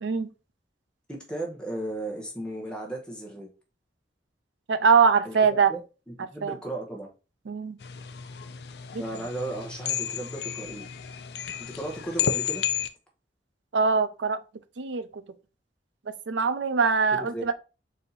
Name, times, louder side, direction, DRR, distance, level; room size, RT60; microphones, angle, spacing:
voice 1, 0.0-0.3 4.7-5.7 6.4-6.5 7.5-7.8 8.9-9.0 13.7-14.4 14.8-15.2 16.3-17.6, right 5 dB, 90° right, 0.5 m, -23 dB
voice 2, 1.1-3.5 5.2-5.8 6.1-7.1 9.0-10.9 11.7-12.6 17.2-17.4, right 1 dB, 5° left, 0.9 m, -35 dB
sound 1, 7.8-12.9, left 9 dB, 65° left, 0.4 m, -32 dB
4.1 x 2.7 x 3.9 m
head